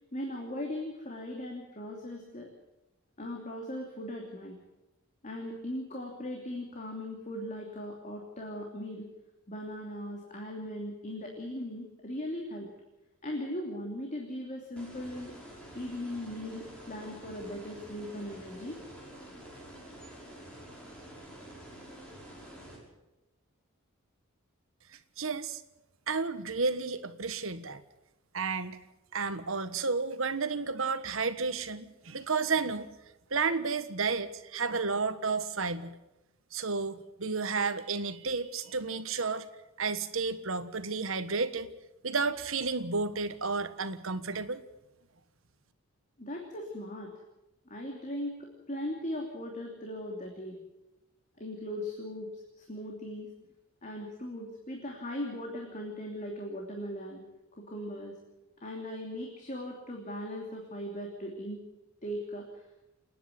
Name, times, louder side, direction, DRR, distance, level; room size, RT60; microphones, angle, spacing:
voice 1, 0.1-2.5 3.2-4.6 5.2-9.1 9.5-12.7 13.2-15.3 15.7-18.8 46.2-47.1 47.7-50.6 51.4-53.3 53.8-57.2 57.6-58.2 58.6-61.6 62.0-62.6, left 1 dB, 35° left, 0 dB, 3.0 m, -39 dB
sound 1, 14.8-22.8, right 1 dB, 5° left, 5.9 m, -48 dB
voice 2, 25.2-25.6 26.1-27.8 28.3-28.8 29.1-32.9 33.3-35.9 36.5-39.4 39.8-41.7 42.0-44.6, right 4 dB, 65° right, 10 dB, 1.4 m, -32 dB
28.5 x 10.0 x 9.9 m, 0.98 s
head